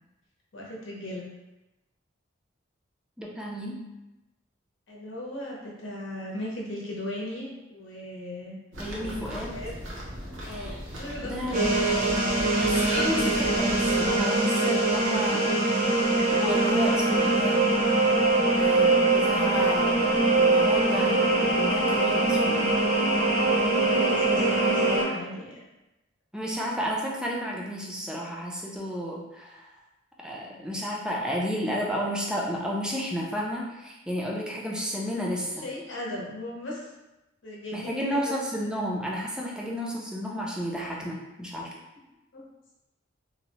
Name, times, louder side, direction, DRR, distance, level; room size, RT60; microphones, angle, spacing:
voice 1, 0.5-1.3 4.9-8.6 9.0-9.8 10.4-11.9 23.8-25.6 35.2-36.9 37.4-38.3 38.6-38.7 42.3-42.4, left 1 dB, 70° left, -4 dB, 0.8 m, -37 dB
voice 2, 3.2-3.9 8.8-9.5 10.4-10.8 11.2-11.6 12.5-17.8 18.6-22.8 26.3-29.7 30.2-35.6 37.7-41.7, equal, 5° right, -3 dB, 0.4 m, -32 dB
sound 1, 8.7-14.2, equal, 85° right, 0.7 m, -37 dB
sound 2, 11.5-25.0, right 2 dB, 45° right, 0.6 m, -23 dB
2.7 x 2.1 x 2.9 m, 0.99 s
head